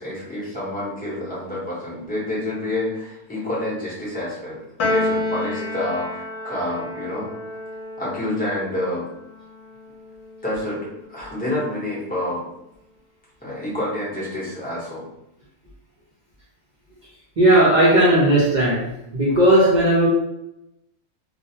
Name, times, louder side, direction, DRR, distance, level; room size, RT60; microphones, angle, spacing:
voice 1, 0.0-7.3 8.0-9.1 10.4-12.4 13.4-15.0, left 1 dB, 10° left, -7 dB, 0.6 m, -28 dB
Piano, 4.8-11.3, left 1 dB, 70° left, 1.0 m, -30 dB
voice 2, 17.4-18.8 19.1-20.1, right 1 dB, 50° right, -8 dB, 0.6 m, -16 dB
2.5 x 2.0 x 2.7 m, 0.84 s
omnidirectional pair, 1.4 m